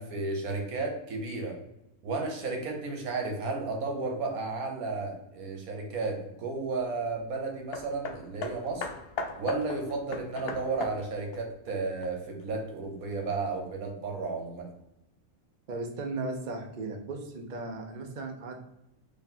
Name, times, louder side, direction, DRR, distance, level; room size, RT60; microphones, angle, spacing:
voice 1, 0.0-1.6 2.0-8.9 9.4-14.7, right 3 dB, 75° right, 2 dB, 1.3 m, -33 dB
Hammer, 7.7-12.5 13.3-13.4, left 3 dB, 70° left, 0.6 m, -38 dB
voice 2, 15.7-18.7, right 3 dB, 55° right, 3 dB, 0.5 m, -36 dB
4.0 x 3.3 x 2.7 m, 0.84 s
omnidirectional pair, 1.6 m